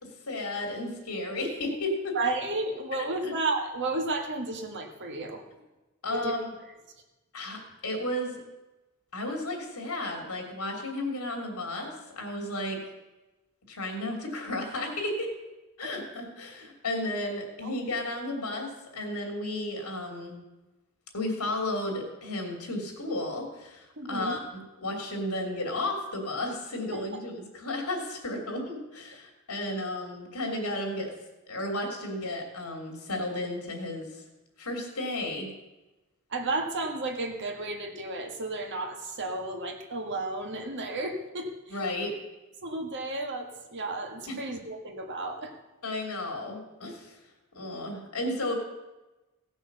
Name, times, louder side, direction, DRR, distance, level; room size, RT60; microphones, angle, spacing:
voice 1, 0.0-2.2 3.2-3.3 6.0-6.5 7.3-8.4 9.1-12.8 13.7-15.3 15.8-20.4 21.1-31.1 31.5-34.1 34.6-35.5 41.7-42.1 44.3-44.4 45.8-47.2 47.5-48.5, left 1 dB, 90° left, 2 dB, 3.1 m, -33 dB
voice 2, 2.1-5.4 6.1-6.3 15.8-15.9 17.6-17.7 24.0-24.4 26.9-27.0 36.3-41.8 42.6-45.5, right 2 dB, 55° right, 3 dB, 1.8 m, -33 dB
16.5 x 6.3 x 6.8 m, 1.1 s
head